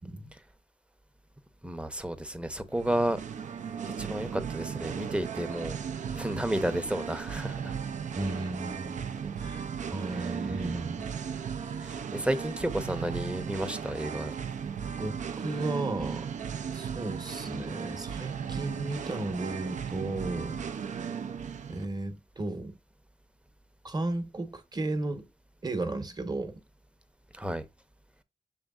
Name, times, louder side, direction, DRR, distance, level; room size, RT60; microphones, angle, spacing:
voice 1, 1.6-3.2 4.0-5.7 6.1-7.7 10.2-10.3 11.8-14.3 27.3-27.6, right 1 dB, 10° right, 0.7 m, -32 dB
Singing, 2.7-21.8, right 7 dB, 65° right, 0.4 m, -36 dB
voice 2, 8.2-9.1 9.4-9.6 9.9-11.1 15.0-16.3 16.7-20.7 21.7-22.8 23.8-25.2 25.6-26.5, right 2 dB, 30° right, 1.0 m, -34 dB
6.4 x 3.4 x 2.3 m
cardioid pair, 60°, 14 cm